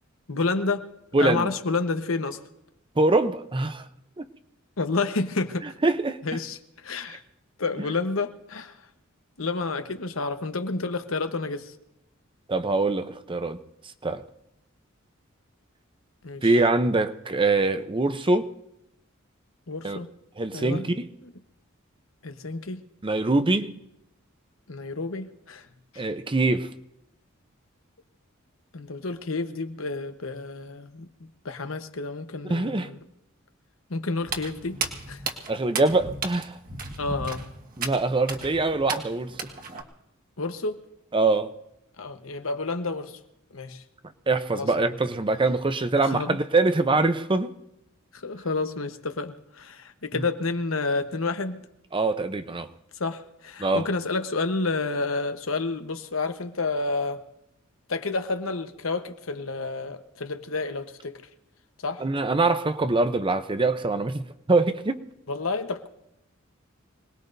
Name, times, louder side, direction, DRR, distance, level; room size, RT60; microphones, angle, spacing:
voice 1, 0.3-0.9 1.2-2.4 4.8-5.7 6.2-7.2 7.6-8.7 9.4-11.7 16.2-16.5 19.7-20.1 20.5-20.9 21.2-21.3 22.2-22.8 24.7-25.6 25.9-26.1 28.7-33.0 33.9-34.8 35.1-35.2 37.0-37.4 40.4-40.8 42.0-43.2 43.5-43.8 44.5-44.9 46.0-46.4 48.1-51.6 53.0-57.2 57.9-61.2 61.8-62.0 65.3-65.9, left 3 dB, 75° left, 1.1 m, -30 dB
voice 2, 1.1-1.5 3.0-3.9 4.2-4.3 5.8-6.2 12.5-13.6 14.0-14.2 16.4-18.5 19.8-20.0 20.4-21.0 23.0-23.7 26.0-26.7 32.5-32.9 35.5-36.5 37.8-39.3 41.1-41.5 44.3-47.5 50.1-50.2 51.9-52.7 53.6-53.9 62.0-64.2 64.5-65.0, right 3 dB, 25° right, 0.7 m, -23 dB
Walk footsteps, 34.2-39.8, right 4 dB, 45° right, 1.6 m, -35 dB
26.0 x 19.5 x 2.7 m
head